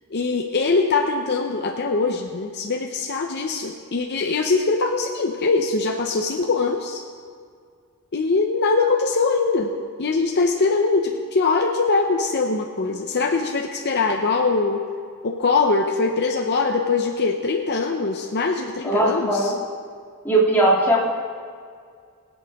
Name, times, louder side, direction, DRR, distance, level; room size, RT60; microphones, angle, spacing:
voice 1, 0.1-7.0 8.1-9.7 10.0-14.8 15.2-19.5, left 4 dB, 50° left, 2 dB, 0.7 m, -22 dB
voice 2, 18.8-19.6 20.2-21.0, right 1 dB, 10° left, -7 dB, 2.7 m, -18 dB
22.0 x 8.3 x 3.6 m, 2.1 s
head